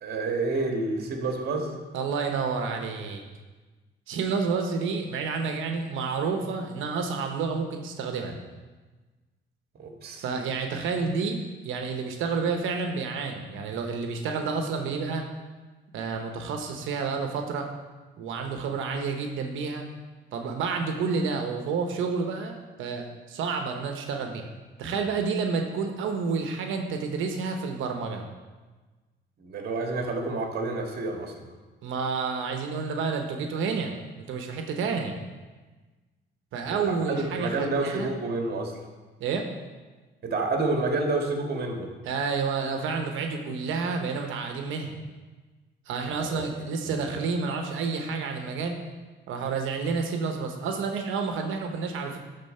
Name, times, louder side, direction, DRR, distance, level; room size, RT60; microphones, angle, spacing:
voice 1, 0.0-1.7 9.8-10.2 29.4-31.5 36.7-38.8 40.2-41.9 46.2-46.5 46.8-47.2, right 3 dB, 55° right, 2 dB, 1.7 m, -29 dB
voice 2, 1.9-3.2 4.1-8.4 10.2-15.2 15.9-17.7 18.2-19.8 20.3-24.4 24.8-28.3 31.8-35.2 36.5-38.1 39.2-39.5 42.0-44.9 45.9-48.8 49.3-52.2, right 5 dB, 85° right, 4 dB, 1.0 m, -29 dB
12.0 x 4.1 x 5.5 m, 1.3 s
cardioid pair, 90°, 20 cm